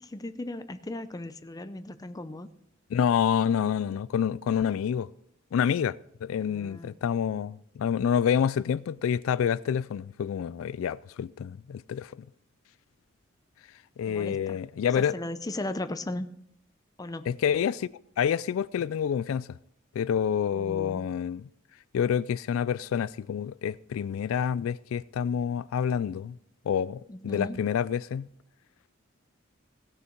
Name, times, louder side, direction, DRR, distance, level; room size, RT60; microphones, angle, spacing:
voice 1, 0.0-2.5 6.4-7.0 14.0-14.6 14.9-16.3 17.0-17.3 20.5-21.0 27.1-27.7, left 1 dB, 20° left, 0.6 m, -37 dB
voice 2, 2.9-5.1 5.5-12.2 14.0-15.2 17.3-19.5 20.0-21.4 21.9-26.4 26.7-28.3, left 8 dB, 80° left, 0.3 m, -28 dB
17.5 x 6.7 x 4.5 m
head